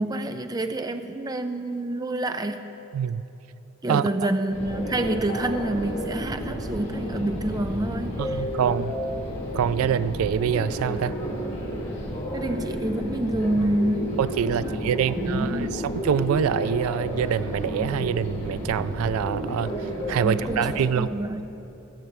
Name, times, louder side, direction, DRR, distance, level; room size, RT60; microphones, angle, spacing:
voice 1, 0.0-2.7 3.8-8.9 12.3-14.8 15.2-15.9 20.2-21.4, right 1 dB, 20° right, 8 dB, 0.4 m, -28 dB
sound 1, 4.5-20.8, equal, 30° left, 2.0 m, -31 dB
voice 2, 8.2-8.9 9.5-11.2 14.2-19.7 20.1-21.1, right 8 dB, 90° right, 16 dB, 0.3 m, -25 dB
15.5 x 5.8 x 7.9 m, 3.0 s
head